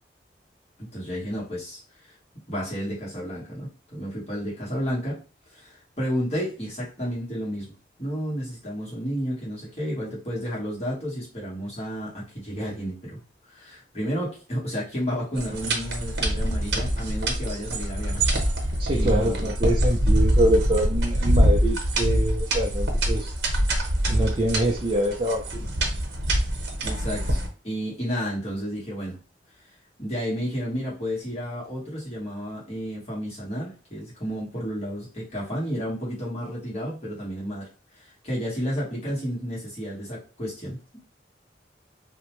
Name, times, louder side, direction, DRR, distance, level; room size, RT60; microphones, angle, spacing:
voice 1, 0.8-1.8 2.5-5.2 5.5-7.7 8.0-13.2 13.5-18.2 18.9-19.5 26.8-27.4 27.6-29.2 30.0-37.7 38.0-41.0, equal, 35° left, -6 dB, 1.3 m, -31 dB
sound 1, 15.3-27.5, right 1 dB, 80° right, 0.8 m, -24 dB
voice 2, 18.8-23.3 24.1-25.7, right 1 dB, 30° right, -2 dB, 0.4 m, -25 dB
2.6 x 2.1 x 3.0 m, 0.36 s
head